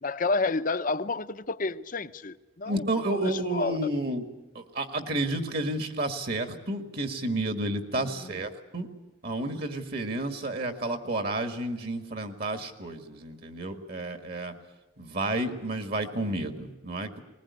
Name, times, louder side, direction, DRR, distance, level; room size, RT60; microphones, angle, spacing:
voice 1, 0.0-2.8 3.1-3.8 7.9-8.3, left 3 dB, 40° left, 0.7 m, -30 dB
voice 2, 2.6-4.2 4.6-8.9 9.2-14.5 15.0-17.2, right 1 dB, 50° right, 1.8 m, -31 dB
20.5 x 20.5 x 9.6 m
head